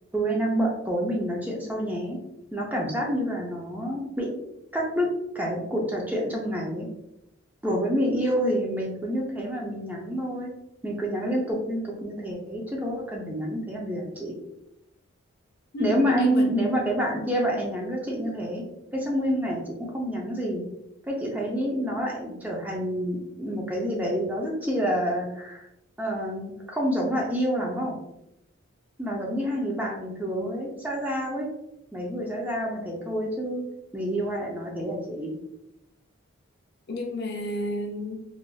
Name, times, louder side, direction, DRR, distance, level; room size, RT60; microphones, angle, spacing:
voice 1, 0.1-2.2 2.5-4.3 4.7-5.1 5.3-6.9 7.6-10.5 10.8-14.3 15.8-18.6 18.9-20.6 21.1-25.7 26.0-28.0 29.0-31.5 31.9-33.6 33.9-35.3, equal, 10° right, -3 dB, 0.4 m, -28 dB
voice 2, 15.7-16.5 36.9-38.3, left 1 dB, 50° left, 1 dB, 0.5 m, -31 dB
3.4 x 2.5 x 2.2 m, 0.85 s
head